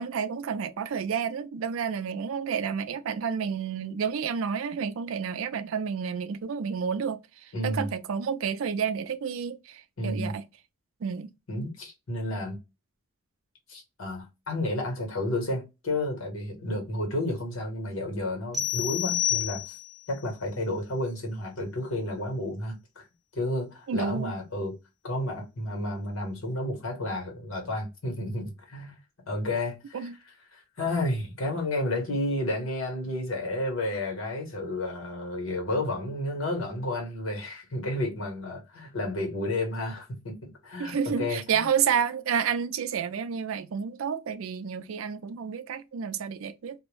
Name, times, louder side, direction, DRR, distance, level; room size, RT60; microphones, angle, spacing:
voice 1, 0.0-7.2 7.6-10.4 11.0-11.3 23.9-24.3 29.9-30.1 40.8-46.8, right 7 dB, 80° right, 0.4 m, -30 dB
voice 2, 7.5-7.9 10.0-10.3 11.5-12.6 13.7-19.6 20.1-23.1 23.3-24.7 25.0-28.9 29.3-30.1 30.5-40.3 40.6-41.7, left 1 dB, 80° left, 1.2 m, -31 dB
sound 1, 18.5-20.1, left 12 dB, ahead, 0.5 m, -29 dB
2.4 x 2.1 x 3.1 m
head